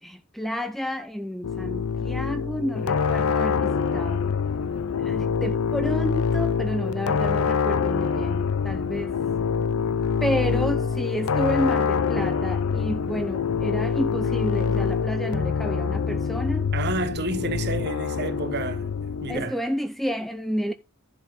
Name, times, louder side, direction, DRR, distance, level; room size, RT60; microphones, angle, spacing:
voice 1, 0.0-4.3 5.0-9.1 10.2-16.7 19.3-20.7, equal, ahead, 0.5 m, -30 dB
sound 1, 1.4-19.5, left 6 dB, 85° left, 0.5 m, -25 dB
voice 2, 16.7-19.6, right 3 dB, 55° right, 1.1 m, -30 dB
11.0 x 5.0 x 3.7 m
head